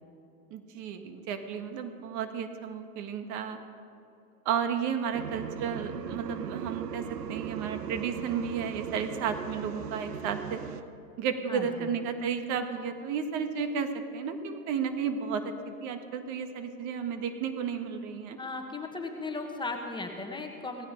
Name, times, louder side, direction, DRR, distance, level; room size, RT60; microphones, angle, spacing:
voice 1, 0.5-3.6 4.4-10.6 11.2-15.5 15.8-18.4, right 7 dB, 40° right, 7 dB, 1.5 m, -33 dB
sound 1, 5.1-10.8, right 8 dB, 80° right, 1.0 m, -38 dB
voice 2, 11.5-11.9 18.4-20.9, left 3 dB, 10° left, 3 dB, 1.6 m, -36 dB
17.5 x 16.0 x 5.2 m, 2.7 s
hypercardioid pair, 115°, 47 cm